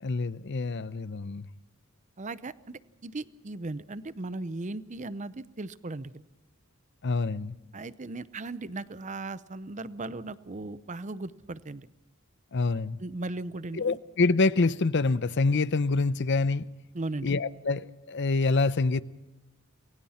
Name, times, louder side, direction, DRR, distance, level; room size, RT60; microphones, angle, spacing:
voice 1, 0.0-1.5 7.0-7.5 12.5-13.0 13.8-16.7 17.2-19.0, left 3 dB, 50° left, 0.7 m, -26 dB
voice 2, 2.2-6.2 7.7-11.9 13.0-14.0 16.9-17.3, right 2 dB, 35° right, 0.7 m, -37 dB
28.5 x 21.5 x 4.3 m
head